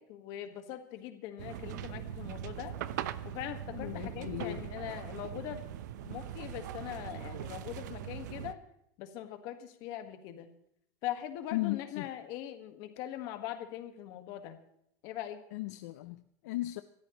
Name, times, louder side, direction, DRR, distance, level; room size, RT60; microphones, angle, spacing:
voice 1, 0.0-2.8 3.2-5.6 6.0-8.6 9.0-10.5 11.0-14.6 15.0-15.4, left 12 dB, 40° left, 8 dB, 1.6 m, -41 dB
sound 1, 1.4-8.5, right 10 dB, 75° right, 0.8 m, -41 dB
voice 2, 3.7-4.7 11.5-12.1 15.5-16.8, left 18 dB, 65° left, 11 dB, 0.6 m, -36 dB
25.5 x 13.5 x 3.1 m, 0.74 s
supercardioid pair, 175°, 10 cm